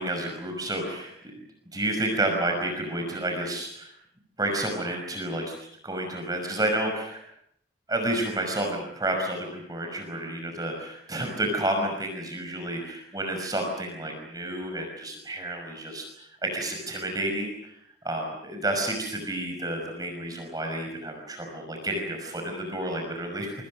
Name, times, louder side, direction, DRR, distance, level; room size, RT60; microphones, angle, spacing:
voice 1, 0.0-1.3 1.7-3.9 4.4-5.5 5.8-7.2 7.9-17.7 18.0-23.5, right 1 dB, 20° right, 3 dB, 5.8 m, -30 dB
28.5 x 25.5 x 6.5 m, 0.70 s
head